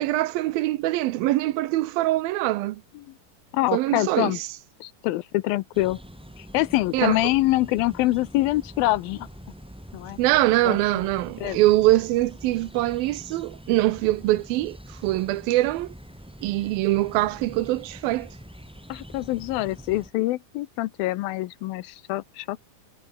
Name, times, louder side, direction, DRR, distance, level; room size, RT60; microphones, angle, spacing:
voice 1, 0.0-2.8 3.7-4.5 6.9-7.2 10.2-14.8 15.0-15.9 16.4-18.3, right 16 dB, 80° right, 2.6 m, -23 dB
voice 2, 3.5-4.4 4.8-6.0 6.4-9.3 9.9-10.2 10.7-10.8 11.4-11.6 18.9-22.8, left 17 dB, 80° left, 2.5 m, -25 dB
sound 1, 5.7-20.1, equal, ahead, 4.9 m, -44 dB
omnidirectional pair, 4.2 m